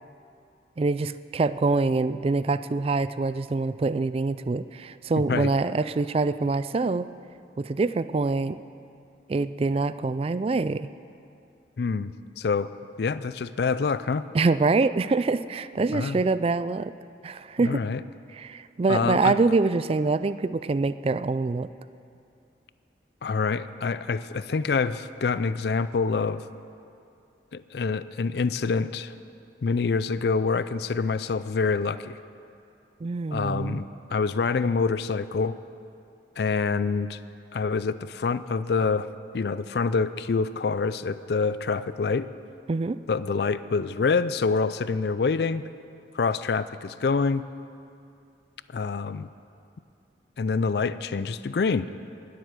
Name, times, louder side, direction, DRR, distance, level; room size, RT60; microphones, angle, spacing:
voice 1, 0.8-7.1 7.6-8.6 9.3-10.9 14.3-16.9 17.2-17.8 18.3-21.7 33.0-33.8 42.7-43.0, right 3 dB, 30° right, 14 dB, 0.3 m, -25 dB
voice 2, 11.8-12.7 13.0-14.3 15.9-16.2 17.6-18.0 18.9-19.4 23.2-26.4 27.5-29.1 29.6-32.2 33.3-35.6 36.4-37.2 37.5-39.1 39.3-42.3 43.1-45.6 46.1-47.4 48.7-49.3 50.4-51.9, left 4 dB, 60° left, 15 dB, 0.4 m, -26 dB
19.5 x 7.9 x 6.6 m, 2.6 s
head